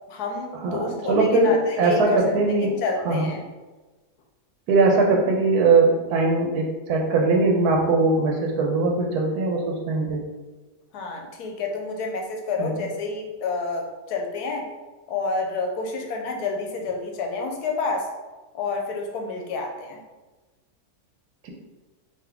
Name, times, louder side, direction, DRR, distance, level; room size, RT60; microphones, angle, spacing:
voice 1, 0.1-3.4 10.9-14.7 15.1-18.1 18.5-20.0, left 3 dB, 85° left, 2 dB, 1.2 m, -29 dB
voice 2, 0.6-2.7 3.0-3.3 4.7-10.2 12.6-12.7 21.4-21.5, right 3 dB, 80° right, 1 dB, 1.2 m, -21 dB
3.8 x 2.8 x 3.4 m, 1.2 s
omnidirectional pair, 1.6 m